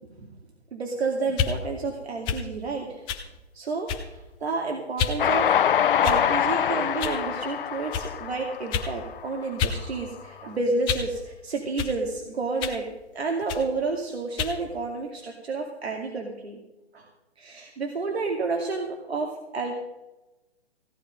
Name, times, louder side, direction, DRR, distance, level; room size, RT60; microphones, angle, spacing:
voice 1, 0.7-3.0 3.5-5.5 6.0-16.6 16.9-17.1 17.4-19.8, right 3 dB, 70° right, 1 dB, 2.5 m, -30 dB
sound 1, 1.3-1.6 2.2-2.5 3.1-3.3 3.9-4.2 5.0-5.2 6.0-6.4 7.0-7.2 7.9-8.1 8.7-8.9 9.6-9.8 10.1-11.1 11.8-12.0 12.6-12.8 13.5-13.7 14.4-14.6, left 7 dB, 15° left, 0.9 m, -29 dB
Train, 5.2-9.6, left 9 dB, 50° left, 0.7 m, -24 dB
16.5 x 10.0 x 5.4 m, 1.0 s
hypercardioid pair, 145°, 33 cm